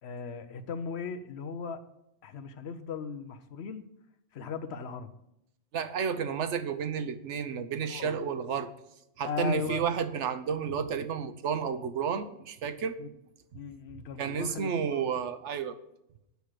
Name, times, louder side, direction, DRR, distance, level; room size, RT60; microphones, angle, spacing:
voice 1, 0.0-1.8 2.2-3.8 4.3-5.1 7.9-8.2 9.2-9.8 13.0-13.1 13.5-15.0, left 6 dB, 65° left, 9 dB, 0.9 m, -37 dB
voice 2, 5.7-8.7 9.2-13.0 14.2-15.8, right 7 dB, 75° right, 9 dB, 1.0 m, -31 dB
8.2 x 6.0 x 6.5 m, 0.83 s
omnidirectional pair, 1.2 m